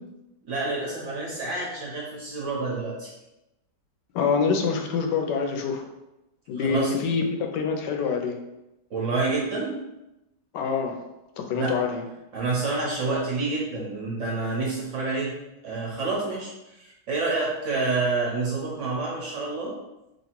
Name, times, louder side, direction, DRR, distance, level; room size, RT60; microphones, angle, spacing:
voice 1, 0.5-3.1 6.5-6.9 8.9-9.9 11.5-11.8 12.3-15.4 15.6-19.8, right 3 dB, 55° right, -3 dB, 0.9 m, -28 dB
voice 2, 4.1-5.8 6.5-8.4 10.5-11.0 11.4-12.0, left 5 dB, 80° left, 4 dB, 1.2 m, -25 dB
3.0 x 2.7 x 4.3 m, 0.93 s
omnidirectional pair, 1.9 m